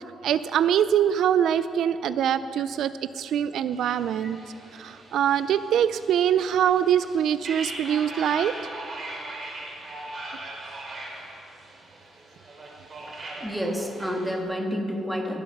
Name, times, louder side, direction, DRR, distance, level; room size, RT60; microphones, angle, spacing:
voice 1, 0.2-4.4 4.8-8.5, right 9 dB, 75° right, 13 dB, 0.3 m, -23 dB
sound 1, 3.7-14.4, right 1 dB, 35° right, 2.9 m, -40 dB
voice 2, 13.4-15.4, equal, 5° right, 1 dB, 1.6 m, -29 dB
18.5 x 8.0 x 5.9 m, 2.5 s
cardioid pair, 135°, 0 cm